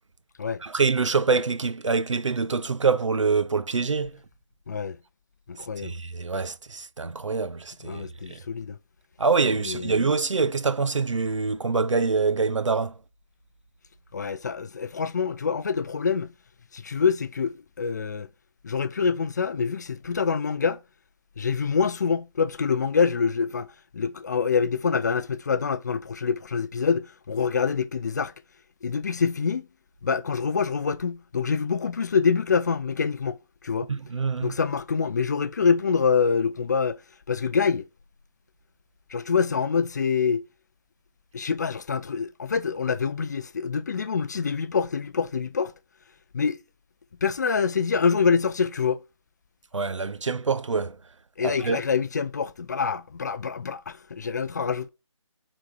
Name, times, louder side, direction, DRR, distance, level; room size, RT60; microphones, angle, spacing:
voice 1, 0.6-4.2 5.8-8.4 9.2-13.0 33.9-34.6 49.7-51.0 51.4-51.8, right 4 dB, 70° right, 1.0 m, -25 dB
voice 2, 4.7-5.0 5.5-6.0 7.8-8.8 9.6-10.0 14.1-16.3 16.7-18.3 18.6-20.8 21.4-23.7 23.9-28.3 28.8-29.7 30.0-33.4 33.6-33.9 34.4-37.0 37.3-37.8 39.1-40.4 41.3-45.7 46.3-46.6 47.2-49.0 51.4-54.9, left 6 dB, 35° left, 0.5 m, -25 dB
9.3 x 4.3 x 4.7 m
figure-of-eight pair, 160°, 16 cm